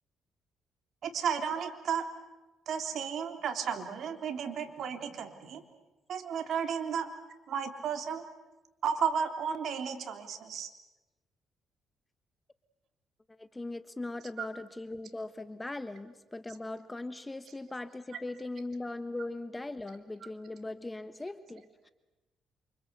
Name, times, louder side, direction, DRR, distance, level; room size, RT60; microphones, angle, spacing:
voice 1, 1.0-2.0 2.7-5.6 6.1-7.1 7.5-8.2 8.8-10.7, right 7 dB, 65° right, 6 dB, 3.3 m, -33 dB
voice 2, 13.4-21.9, left 2 dB, 15° left, 11 dB, 1.2 m, -40 dB
28.5 x 26.0 x 8.1 m, 1.1 s
cardioid pair, 90°, 0 cm